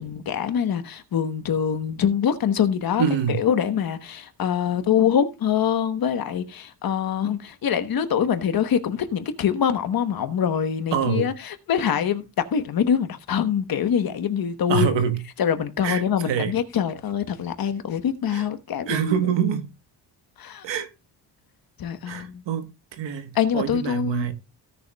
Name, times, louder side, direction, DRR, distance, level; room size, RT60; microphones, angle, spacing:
voice 1, 0.0-14.9 15.4-19.1 20.4-20.6 21.8-22.4 23.3-24.3, left 8 dB, 55° left, 1.1 m, -24 dB
voice 2, 3.0-3.4 10.9-11.3 14.7-15.2 15.8-16.6 18.3-18.5 18.9-19.7 20.6-20.9 22.1-24.3, right 8 dB, 75° right, 1.4 m, -25 dB
17.0 x 6.7 x 2.3 m
wide cardioid pair, 150°, 44 cm